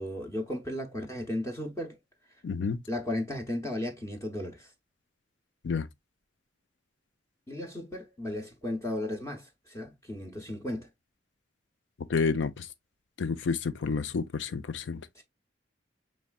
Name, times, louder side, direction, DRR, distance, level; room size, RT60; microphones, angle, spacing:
voice 1, 0.0-1.9 2.9-4.7 7.5-10.9 15.2-15.3, left 1 dB, 15° left, 0.7 m, -35 dB
voice 2, 2.4-2.8 5.6-5.9 12.1-12.7 13.2-15.0, left 5 dB, 80° left, 0.5 m, -29 dB
5.4 x 3.1 x 2.3 m
head